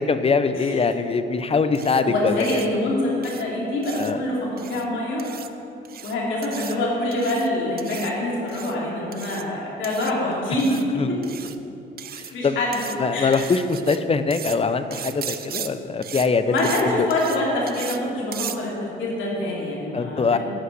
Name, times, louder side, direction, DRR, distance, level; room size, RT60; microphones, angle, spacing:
voice 1, 0.0-2.5 4.0-4.2 11.0-11.1 12.1-12.6 13.0-16.5 16.8-17.1 19.9-20.4, left 4 dB, 30° left, 10 dB, 0.7 m, -22 dB
sound 1, 1.7-2.0 2.4-2.7 3.2-3.4 3.8-4.1 4.6-4.8 5.2-5.5 5.8-6.1 6.4-6.8 7.1-7.5 7.8-8.1 8.5-8.7 9.1-9.4 9.8-10.1 10.6-10.8 11.2-11.6 12.0-12.3 12.7-13.0 13.3-14.0 14.3-14.6 14.9-15.7 16.0-16.3 16.6-16.8 17.1-17.4 17.7-18.0 18.3-18.6, right 9 dB, 50° right, 0.6 m, -36 dB
voice 2, 2.0-5.3 6.0-11.2 12.3-12.9 13.1-13.4 16.5-20.4, left 1 dB, 75° left, -4 dB, 2.9 m, -25 dB
11.5 x 5.7 x 7.8 m, 2.9 s
cardioid pair, 90°, 20 cm